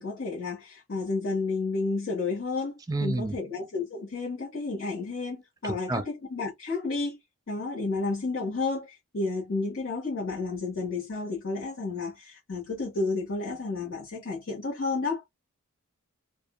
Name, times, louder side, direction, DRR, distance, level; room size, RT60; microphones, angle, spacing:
voice 1, 0.0-7.2 7.5-8.9 9.1-15.2, left 3 dB, 65° left, 1.5 m, -31 dB
voice 2, 2.9-3.4 5.6-6.0, right 2 dB, 15° right, 0.3 m, -29 dB
2.7 x 2.5 x 2.3 m
head